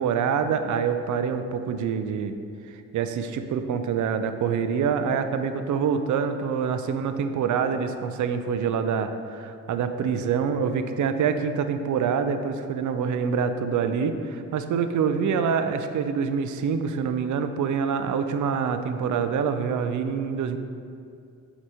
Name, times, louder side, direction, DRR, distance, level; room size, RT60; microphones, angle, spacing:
voice 1, 0.0-2.4 2.7-20.6, right 6 dB, 70° right, 9 dB, 0.5 m, -26 dB
6.6 x 3.0 x 4.8 m, 2.4 s
cardioid pair, 65°, 32 cm